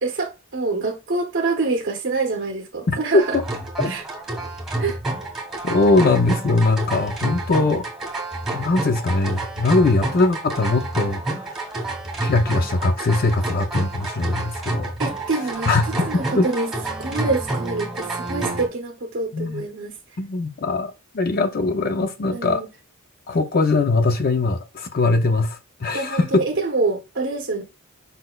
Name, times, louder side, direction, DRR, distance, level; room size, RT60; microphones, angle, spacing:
voice 1, 0.0-3.4 3.8-4.0 4.8-5.0 15.0-16.7 17.0-19.9 22.3-22.7 25.9-27.6, right 3 dB, 50° right, 0.7 m, -26 dB
voice 2, 2.9-3.2 3.8-3.9 5.6-7.8 8.5-11.6 12.2-14.9 15.7-16.5 19.3-19.6 20.2-22.6 23.3-26.5, left 3 dB, 40° left, 0.5 m, -21 dB
sound 1, 3.2-18.7, right 2 dB, ahead, 2.0 m, -29 dB
5.2 x 4.0 x 2.2 m
head